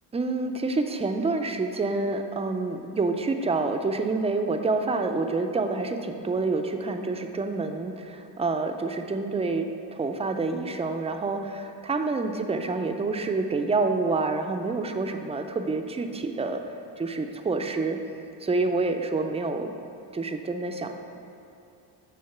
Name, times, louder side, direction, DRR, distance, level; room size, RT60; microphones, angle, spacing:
voice 1, 0.1-16.6 17.0-18.0 18.4-19.7 20.1-20.9, right 3 dB, 15° right, 6 dB, 0.3 m, -27 dB
9.5 x 3.6 x 5.8 m, 2.6 s
wide cardioid pair, 140°, 43 cm